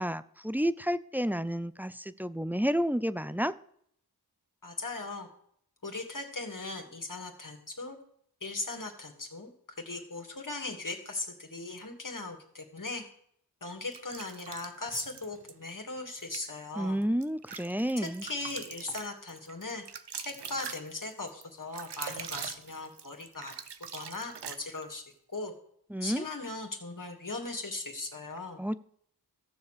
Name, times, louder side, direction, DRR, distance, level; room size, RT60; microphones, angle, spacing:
voice 1, 0.0-3.5 16.8-18.2 25.9-26.2 28.6-28.8, equal, 5° right, 14 dB, 0.6 m, -30 dB
voice 2, 4.6-5.3 5.8-8.0 8.4-13.0 13.6-17.0 18.0-19.8 20.2-23.5 23.9-25.0 25.3-25.5 26.0-28.6, left 2 dB, 50° left, 3 dB, 2.8 m, -38 dB
sound 1, 13.9-15.5 16.2-16.5 17.0-25.0, right 7 dB, 85° right, 0.8 m, -43 dB
14.5 x 7.1 x 6.9 m, 0.66 s
cardioid pair, 45°, 40 cm